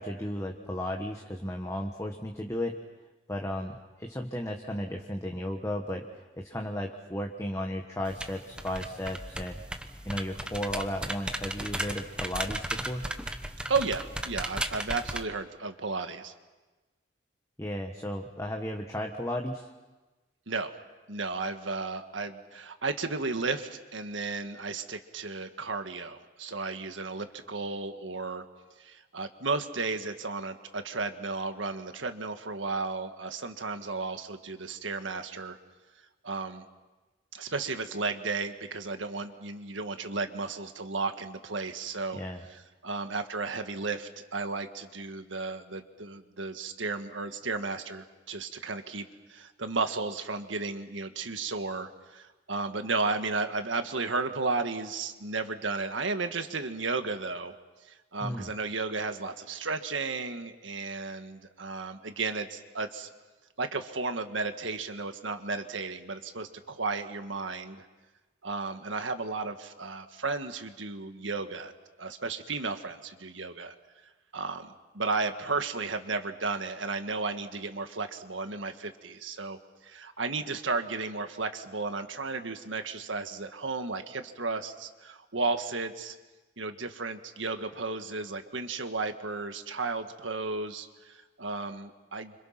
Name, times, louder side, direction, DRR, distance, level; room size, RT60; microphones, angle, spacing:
voice 1, 0.0-2.8 3.3-9.6 10.0-13.0 17.6-19.7 42.1-42.4 58.2-58.5, left 1 dB, 15° left, 2 dB, 1.3 m, -34 dB
sound 1, 8.0-15.2, right 1 dB, 5° right, 1.0 m, -36 dB
voice 2, 13.7-16.3 20.5-20.7 21.1-28.4 28.8-35.6 36.2-36.6 37.3-42.2 42.5-57.5 57.8-63.1 63.6-67.9 68.4-71.7 72.0-73.7 74.3-86.2 86.6-92.3, right 3 dB, 85° right, 8 dB, 1.7 m, -34 dB
29.5 x 26.5 x 5.9 m, 1.2 s
head